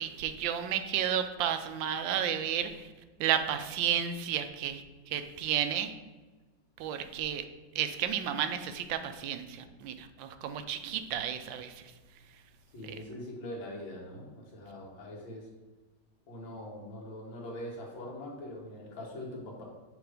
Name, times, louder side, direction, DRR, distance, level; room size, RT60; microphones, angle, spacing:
voice 1, 0.0-2.7 3.2-4.8 5.1-5.9 6.8-7.4 7.7-11.7 12.9-13.0, right 9 dB, 85° right, 8 dB, 1.3 m, -32 dB
voice 2, 12.7-15.5 16.3-19.6, left 1 dB, 85° left, -3 dB, 2.1 m, -42 dB
6.7 x 3.0 x 5.0 m, 1.2 s
omnidirectional pair, 2.0 m